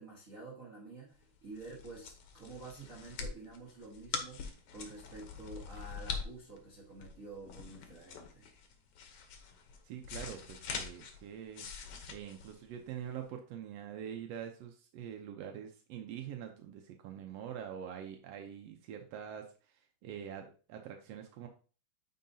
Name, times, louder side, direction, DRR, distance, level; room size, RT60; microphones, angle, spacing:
voice 1, 0.0-8.5, right 3 dB, 60° right, -3 dB, 0.8 m, -49 dB
sound 1, 1.2-13.2, left 6 dB, 65° left, 1.5 m, -44 dB
voice 2, 9.8-11.7 12.1-19.5 20.0-21.5, right 9 dB, 80° right, 4 dB, 1.4 m, -44 dB
9.3 x 4.7 x 2.7 m, 0.37 s
omnidirectional pair, 3.7 m